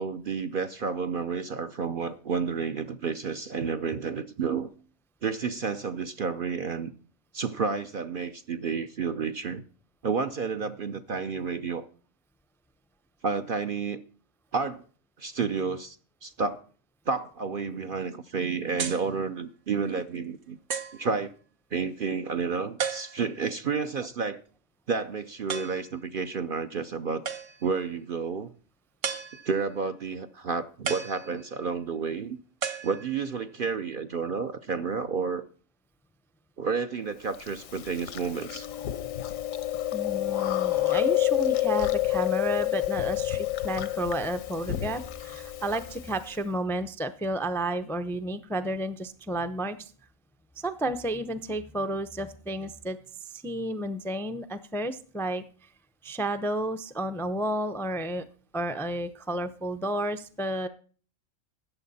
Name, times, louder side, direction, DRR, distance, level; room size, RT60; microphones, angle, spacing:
voice 1, 0.0-4.7 5.2-6.9 7.3-9.6 10.0-11.9 13.2-14.0 14.5-14.8 15.2-16.6 17.1-20.6 20.9-21.4 21.7-24.4 24.9-27.3 27.6-28.5 29.5-32.4 32.8-35.4 36.6-38.7, right 5 dB, 50° right, 0.8 m, -30 dB
sound 1, 18.8-19.1 19.9-20.0 20.7-21.1 22.8-23.4 25.5-25.9 27.3-27.8 29.0-29.7 30.9-31.7 32.6-33.5, right 6 dB, 65° right, 1.4 m, -34 dB
Chewing mastication, 37.4-46.4, left 15 dB, 80° left, 1.2 m, -29 dB
voice 2, 39.9-49.9 50.6-55.4 56.0-58.2 58.5-60.7, right 1 dB, 5° left, 0.5 m, -31 dB
14.0 x 9.3 x 4.1 m
omnidirectional pair, 1.4 m